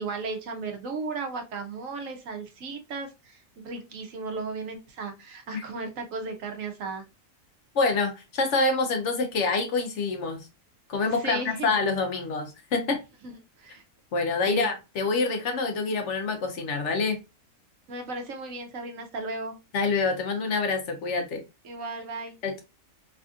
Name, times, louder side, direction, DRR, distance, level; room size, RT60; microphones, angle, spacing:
voice 1, 0.0-7.0 11.2-11.7 13.2-13.8 14.5-14.7 17.9-19.6 21.6-22.3, right 3 dB, 75° right, 1.1 m, -35 dB
voice 2, 7.7-10.5 10.9-13.0 14.1-17.2 19.7-21.4 22.4-22.6, left 3 dB, 65° left, 1.0 m, -26 dB
3.3 x 2.4 x 2.4 m
omnidirectional pair, 1.4 m